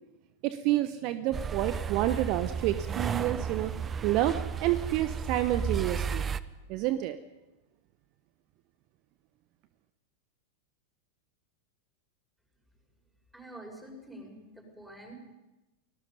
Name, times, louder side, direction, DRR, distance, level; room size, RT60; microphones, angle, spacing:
voice 1, 0.4-3.7 4.0-6.2 6.7-7.2, right 14 dB, 40° right, 12 dB, 0.9 m, -29 dB
sound 1, 1.3-6.4, right 7 dB, 20° right, 0.8 m, -33 dB
voice 2, 13.3-15.1, right 1 dB, 5° right, 1 dB, 6.8 m, -47 dB
29.5 x 18.5 x 5.4 m, 1.0 s
figure-of-eight pair, 90°, 0 cm